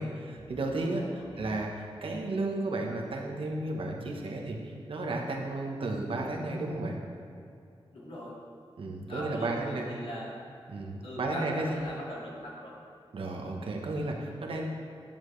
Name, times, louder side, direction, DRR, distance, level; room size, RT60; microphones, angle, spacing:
voice 1, 0.0-7.0 8.8-9.9 10.7-11.8 13.1-14.7, right 2 dB, 65° right, 0 dB, 1.1 m, -33 dB
voice 2, 7.9-8.4 9.1-10.4 11.0-12.7, equal, 75° left, -5 dB, 2.2 m, -40 dB
10.5 x 7.2 x 3.2 m, 2.5 s
wide cardioid pair, 105°, 10 cm